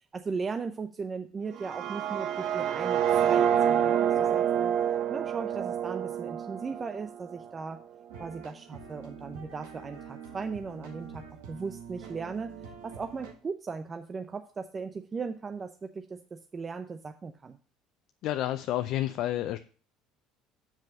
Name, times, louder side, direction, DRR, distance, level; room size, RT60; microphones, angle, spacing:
voice 1, 0.1-4.8 5.1-7.8 8.2-12.5 12.8-17.6, right 5 dB, 30° right, 0.6 m, -37 dB
sound 1, 1.5-7.5, right 9 dB, 60° right, 0.9 m, -27 dB
sound 2, 8.1-13.3, right 6 dB, 90° right, 1.7 m, -45 dB
voice 2, 18.2-19.6, left 13 dB, 65° left, 0.5 m, -30 dB
7.4 x 5.1 x 6.5 m
supercardioid pair, 100°, 0 cm